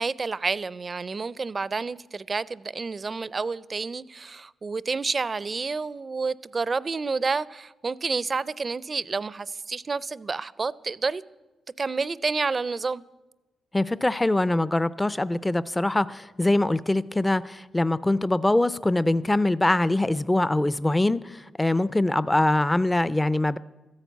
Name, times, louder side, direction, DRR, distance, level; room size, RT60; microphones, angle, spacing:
voice 1, 0.0-11.2 11.8-13.0, right 4 dB, 40° right, 0.5 m, -29 dB
voice 2, 13.7-23.6, left 1 dB, 15° left, 0.4 m, -23 dB
13.5 x 10.5 x 8.1 m
cardioid pair, 65°, 0 cm